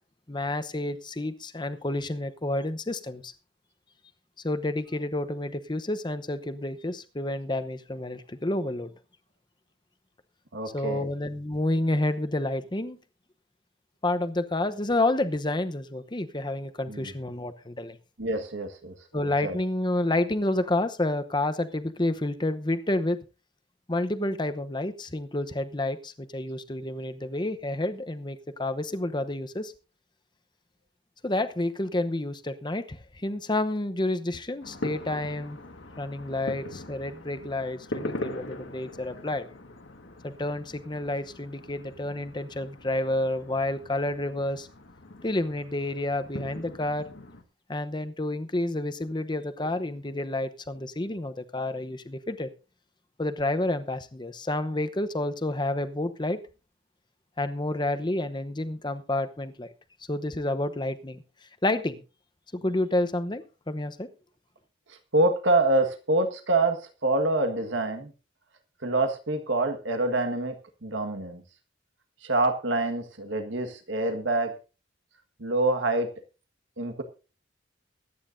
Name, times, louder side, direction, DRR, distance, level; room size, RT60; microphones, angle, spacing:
voice 1, 0.3-3.3 4.4-8.9 10.7-13.0 14.0-18.0 19.1-23.2 23.9-29.7 31.2-35.6 36.0-39.5 40.2-44.7 45.2-47.1 47.7-52.5 53.2-56.4 57.4-59.7 60.1-61.2 61.6-62.0 62.5-64.1, left 1 dB, 25° left, 10 dB, 0.9 m, -29 dB
voice 2, 10.5-11.1 16.9-17.1 18.2-18.9 19.4-19.6 65.1-66.8 67.0-68.1 68.8-70.5 70.8-71.4 72.2-74.5 75.4-76.1 76.8-77.0, right 2 dB, 80° right, 6 dB, 1.6 m, -26 dB
sound 1, 34.6-47.4, left 1 dB, 80° left, 1.7 m, -41 dB
23.0 x 9.6 x 2.7 m, 0.33 s
head